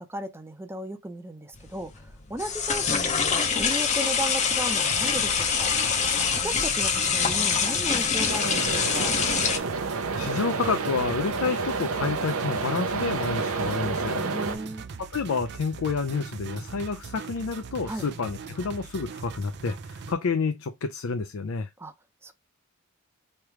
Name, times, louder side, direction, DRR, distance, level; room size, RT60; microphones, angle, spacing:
voice 1, 0.1-1.9 2.3-5.9 6.4-9.1 14.2-14.8 17.8-18.0 21.8-21.9 22.2-22.3, right 1 dB, 10° right, 0.6 m, -35 dB
sound 1, 1.6-9.6, left 6 dB, 35° left, 0.7 m, -25 dB
sound 2, 4.9-20.1, right 5 dB, 55° right, 0.5 m, -40 dB
sound 3, 8.3-14.6, right 4 dB, 90° right, 0.7 m, -29 dB
voice 2, 9.8-14.3 15.0-21.7, left 4 dB, 75° left, 0.5 m, -29 dB
3.3 x 3.0 x 4.6 m
head